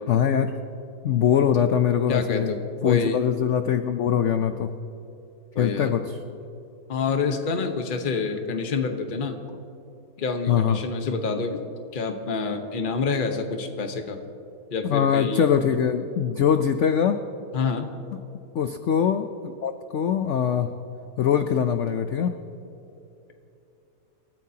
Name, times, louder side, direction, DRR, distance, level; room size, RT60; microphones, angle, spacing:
voice 1, 0.1-0.5 1.0-2.5 2.8-4.7 5.6-6.0 10.5-10.8 14.8-17.2 18.5-20.7 21.2-22.3, left 8 dB, 85° left, 8 dB, 0.6 m, -22 dB
voice 2, 2.1-3.2 5.5-5.9 6.9-9.4 10.2-11.6 11.9-14.2 14.7-15.5 17.5-17.9, left 4 dB, 35° left, 5 dB, 1.0 m, -27 dB
28.0 x 13.5 x 2.8 m, 2.8 s
omnidirectional pair, 2.0 m